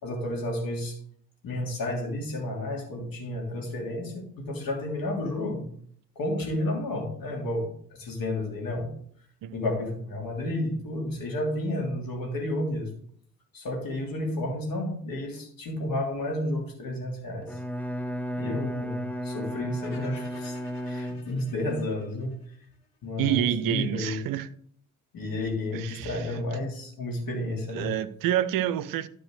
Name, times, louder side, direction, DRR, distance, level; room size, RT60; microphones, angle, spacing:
voice 1, 0.0-1.0 1.4-5.7 6.1-8.9 9.5-12.9 13.5-17.6 18.3-20.6 20.9-22.3 23.0-24.2 25.1-27.9, left 1 dB, 50° left, 3.2 m, -31 dB
Bowed string instrument, 17.4-21.7, equal, 5° left, 0.7 m, -34 dB
sound 1, 19.8-23.0, left 4 dB, 80° left, 1.2 m, -51 dB
voice 2, 23.2-24.5 25.7-26.2 27.7-29.1, right 12 dB, 50° right, 0.7 m, -28 dB
12.0 x 4.6 x 4.8 m
figure-of-eight pair, 45°, 45 cm